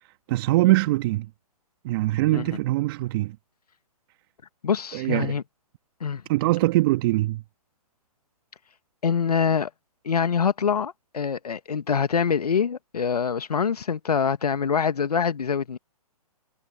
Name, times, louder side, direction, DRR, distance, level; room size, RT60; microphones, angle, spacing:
voice 1, 0.3-1.3 1.8-3.4 4.9-5.3 6.3-7.4, right 18 dB, 35° right, 1.6 m, -22 dB
voice 2, 4.6-5.4 6.0-6.2 9.0-9.7 10.0-15.8, left 6 dB, 80° left, 1.6 m, -25 dB
hypercardioid pair, 135°, 20 cm